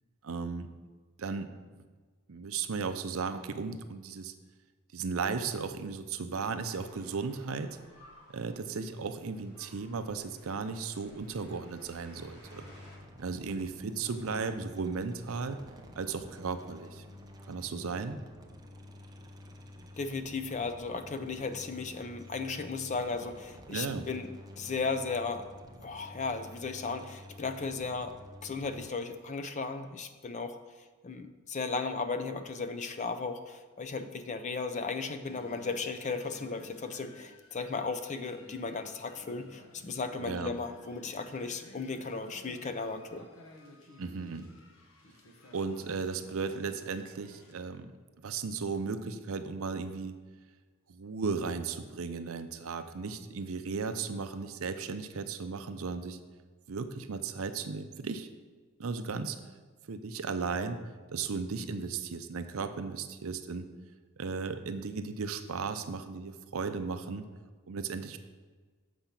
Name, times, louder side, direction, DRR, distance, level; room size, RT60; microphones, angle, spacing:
voice 1, 0.2-0.7 1.2-1.5 2.3-4.3 4.9-7.8 8.3-12.7 13.2-15.6 16.0-17.0 17.5-18.2 23.7-24.1 40.2-40.5 44.0-44.5 45.5-47.9 48.2-50.2 50.9-56.2 56.7-58.3 58.8-59.4 59.9-60.8 61.1-63.7 64.2-67.3 67.7-68.2, right 4 dB, 70° right, 9 dB, 0.5 m, -35 dB
sound 1, 6.6-13.0, left 1 dB, 90° left, 2.3 m, -57 dB
sound 2, 12.4-28.9, left 1 dB, 15° right, 0.5 m, -50 dB
voice 2, 20.0-24.3 24.6-25.5 25.8-28.1 28.4-30.6 31.0-43.3, left 4 dB, 35° left, 9 dB, 0.4 m, -35 dB
sound 3, 35.2-47.6, left 1 dB, 70° left, 1.2 m, -55 dB
7.1 x 5.1 x 5.8 m, 1.4 s
head